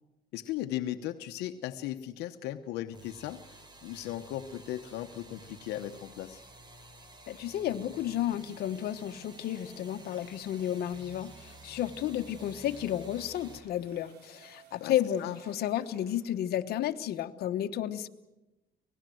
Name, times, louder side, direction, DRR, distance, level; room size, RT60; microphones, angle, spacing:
voice 1, 0.3-6.4 14.8-14.9 15.2-15.4, left 13 dB, 85° left, 7 dB, 1.0 m, -37 dB
sound 1, 2.9-13.6, right 2 dB, 25° right, 4.3 m, -52 dB
sound 2, 3.5-16.7, right 6 dB, 75° right, 4.1 m, -62 dB
voice 2, 7.3-18.1, left 11 dB, 70° left, 8 dB, 1.2 m, -32 dB
26.5 x 19.0 x 7.8 m, 1.0 s
cardioid pair, 110°, 17 cm